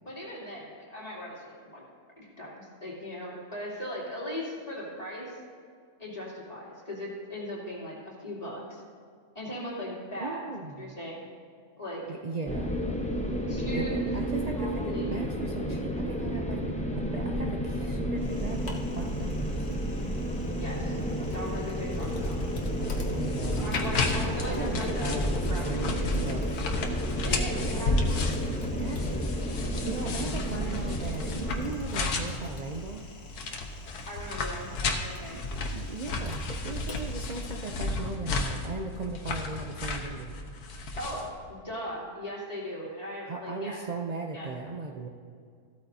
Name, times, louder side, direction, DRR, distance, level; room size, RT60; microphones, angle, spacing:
voice 1, 0.0-1.8 2.2-5.4 6.0-8.8 9.3-10.4 10.8-11.3 11.8-12.0 13.5-14.0 14.6-15.1 20.5-21.0 21.3-22.4 23.6-25.1 25.5-25.6 25.9-26.2 27.1-28.2 34.1-35.4 40.9-43.8 44.3-44.5, equal, 25° left, -6 dB, 3.1 m, -38 dB
voice 2, 10.2-11.0 12.1-12.7 13.6-16.7 17.0-19.7 23.1-24.1 24.4-25.9 26.2-26.4 28.8-33.0 35.3-40.3 43.3-45.1, right 3 dB, 70° right, 2 dB, 0.3 m, -37 dB
sound 1, 12.5-31.8, equal, 5° left, 0.7 m, -31 dB
Typing, 18.2-37.8, left 1 dB, 50° left, 1.4 m, -45 dB
sound 2, 22.0-41.3, left 3 dB, 85° left, 1.5 m, -33 dB
15.0 x 12.5 x 2.7 m, 2.2 s
omnidirectional pair, 1.6 m